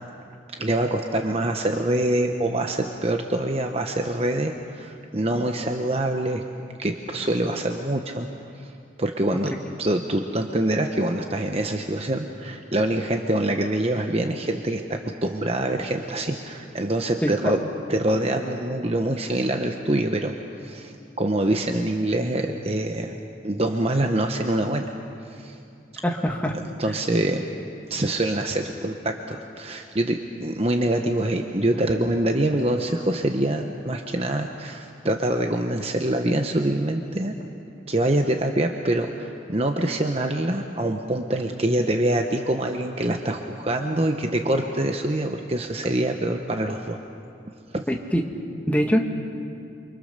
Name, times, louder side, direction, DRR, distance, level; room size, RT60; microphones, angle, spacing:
voice 1, 0.5-6.4 6.8-8.3 8.6-8.7 9.0-9.5 9.8-17.6 17.9-20.3 20.6-23.2 23.4-24.8 25.3-25.6 26.8-27.5 27.9-37.3 37.9-47.0 47.7-47.8, right 1 dB, 30° right, 4 dB, 1.0 m, -25 dB
voice 2, 26.0-26.6 47.9-48.2 48.7-49.0, equal, 10° left, 1 dB, 1.5 m, -22 dB
29.0 x 24.5 x 6.7 m, 2.5 s
head